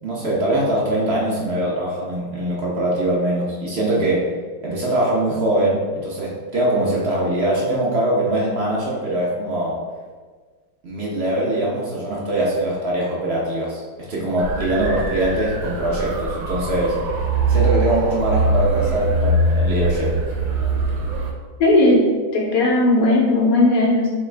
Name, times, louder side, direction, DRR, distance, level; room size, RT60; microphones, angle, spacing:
voice 1, 0.0-4.3 4.6-9.8 10.8-13.8 14.1-17.0 17.5-20.1, right 1 dB, 55° right, -5 dB, 0.7 m, -22 dB
sound 1, 14.4-21.3, right 2 dB, 90° right, 1.6 m, -22 dB
voice 2, 21.6-24.1, left 2 dB, 60° left, -3 dB, 1.0 m, -16 dB
4.1 x 3.6 x 3.3 m, 1.5 s
omnidirectional pair, 2.1 m